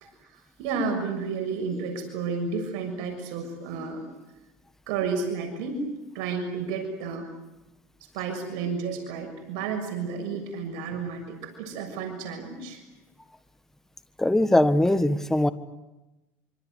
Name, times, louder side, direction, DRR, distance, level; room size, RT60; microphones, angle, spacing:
voice 1, 0.3-4.1 4.9-5.9 6.1-7.3 8.1-12.8, right 5 dB, 70° right, 4 dB, 6.7 m, -31 dB
voice 2, 14.2-15.5, left 1 dB, 5° left, 12 dB, 1.5 m, -21 dB
26.5 x 25.0 x 8.1 m, 1.0 s
supercardioid pair, 115°, 7 cm